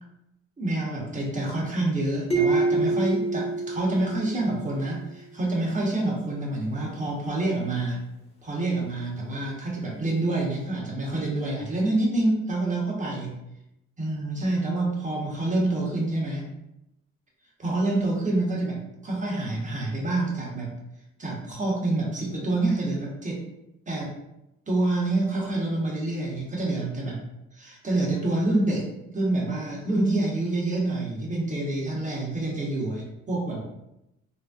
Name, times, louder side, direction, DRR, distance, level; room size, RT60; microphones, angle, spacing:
voice 1, 0.6-8.0 8.4-13.4 14.0-16.5 17.6-20.8 21.2-23.4 23.9-24.1 24.7-27.2 27.5-28.9 29.1-33.6, right 2 dB, 25° right, -3 dB, 1.0 m, -27 dB
sound 1, 2.3-4.9, right 3 dB, 20° left, 1.1 m, -26 dB
3.2 x 2.6 x 2.3 m, 0.87 s
cardioid pair, 90°, 30 cm